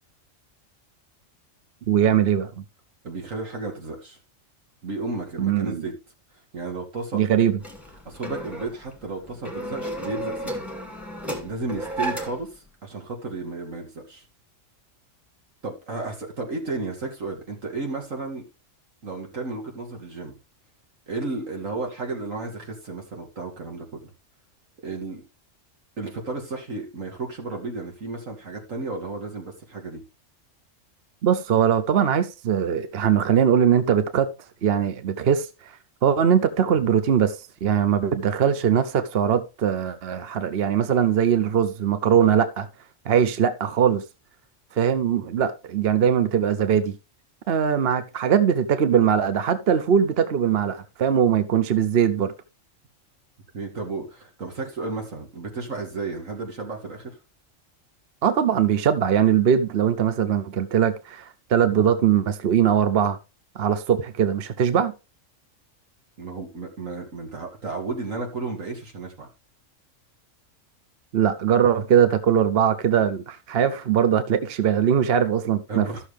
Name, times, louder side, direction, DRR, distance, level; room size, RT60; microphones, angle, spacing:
voice 1, 1.9-2.6 5.4-5.8 7.1-7.6 31.2-34.3 34.6-35.7 36.0-42.7 43.1-44.0 44.7-47.0 47.5-52.3 58.2-63.2 63.6-64.9 71.1-75.9, right 8 dB, 55° right, 0.9 m, -21 dB
voice 2, 3.0-4.2 4.8-5.9 6.5-7.2 8.1-10.6 11.4-14.2 15.6-18.5 19.0-20.3 21.1-24.1 24.8-25.2 26.0-30.0 53.5-57.2 66.2-69.3 75.7-76.0, right 3 dB, 80° right, 2.7 m, -33 dB
sound 1, 7.6-12.6, right 1 dB, ahead, 2.2 m, -33 dB
13.5 x 6.4 x 3.3 m
omnidirectional pair, 1.3 m